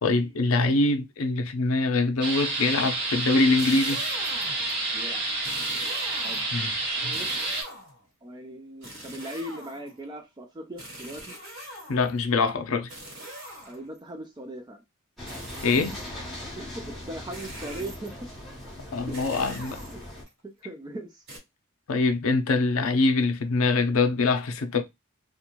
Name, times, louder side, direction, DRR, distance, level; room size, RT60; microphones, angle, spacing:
voice 1, 0.0-4.0 6.5-6.7 7.0-7.1 11.9-12.9 15.6-16.0 18.9-19.8 21.9-24.8, left 3 dB, 70° left, 0.5 m, -24 dB
sound 1, 2.2-7.6, right 2 dB, 50° right, 1.0 m, -29 dB
sound 2, 3.4-4.8 5.4-6.6 7.1-8.0 8.8-10.0 10.8-12.2 12.9-14.0 15.3-16.2 17.3-18.2 19.1-20.3 21.3-21.4, right 1 dB, 65° right, 1.5 m, -42 dB
voice 2, 4.9-5.2 6.2-6.5 7.0-7.3 8.2-11.3 13.7-14.8 16.6-18.1 19.1-19.2 19.9-20.0 20.4-21.2, right 1 dB, 20° right, 0.3 m, -39 dB
sound 3, 15.2-20.2, left 1 dB, ahead, 0.9 m, -40 dB
2.4 x 2.2 x 2.9 m
head